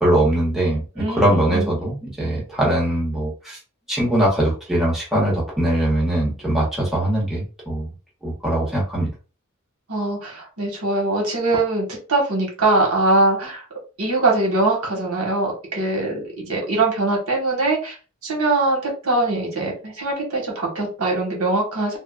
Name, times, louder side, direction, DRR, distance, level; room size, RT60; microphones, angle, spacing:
voice 1, 0.0-3.6 3.9-7.9 8.2-9.1, right 1 dB, ahead, -6 dB, 1.0 m, -21 dB
voice 2, 1.0-1.7 9.9-13.6 14.0-17.9 18.2-22.0, right 2 dB, 80° right, -1 dB, 1.3 m, -22 dB
3.6 x 2.1 x 2.3 m, 0.34 s
head